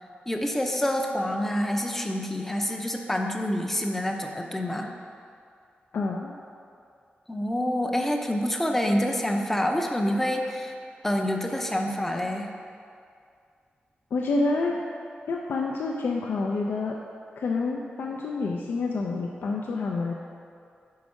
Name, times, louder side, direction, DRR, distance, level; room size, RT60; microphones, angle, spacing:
voice 1, 0.3-4.9 7.3-10.7 11.0-12.5, left 1 dB, 10° left, 2 dB, 0.5 m, -27 dB
voice 2, 5.9-6.3 14.1-14.8 15.3-17.0 17.4-20.1, left 3 dB, 90° left, -1 dB, 0.4 m, -28 dB
5.2 x 4.7 x 6.2 m, 2.3 s
wide cardioid pair, 175°, 3 cm